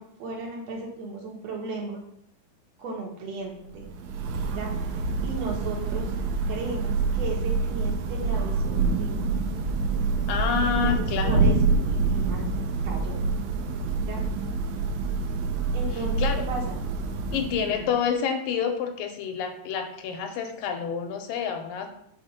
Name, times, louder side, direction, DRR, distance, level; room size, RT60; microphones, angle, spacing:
voice 1, 0.0-2.0 2.8-3.9 4.5-6.1 6.5-9.3 10.6-12.4 12.8-13.2 14.0-14.2 15.7-16.2 16.5-16.8 17.6-17.9, right 2 dB, 55° right, -1 dB, 2.2 m, -36 dB
Thunder / Rain, 3.7-18.0, right 4 dB, 80° right, 1.8 m, -26 dB
voice 2, 10.3-11.4 16.2-16.4 17.3-21.9, left 7 dB, 80° left, 5 dB, 2.4 m, -28 dB
5.4 x 3.6 x 5.7 m, 0.73 s
omnidirectional pair, 4.0 m